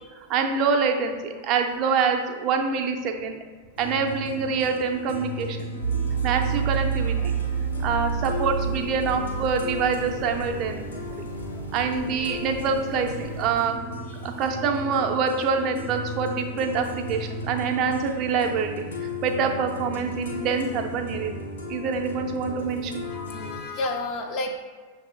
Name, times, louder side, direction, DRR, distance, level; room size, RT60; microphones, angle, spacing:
voice 1, 0.3-3.4 3.8-5.7 6.2-7.2 7.8-11.3 11.7-13.8 14.2-18.8 19.2-21.3 21.7-23.0, right 5 dB, 40° right, 4 dB, 0.5 m, -26 dB
sound 1, 3.8-23.6, left 1 dB, 70° left, 0.9 m, -36 dB
sound 2, 5.8-13.5, right 6 dB, 90° left, 1.3 m, -30 dB
voice 2, 11.1-11.6 14.1-14.2 23.0-24.6, left 2 dB, 35° left, 3 dB, 0.4 m, -32 dB
6.5 x 2.7 x 2.4 m, 1.5 s
figure-of-eight pair, 90°, 0 cm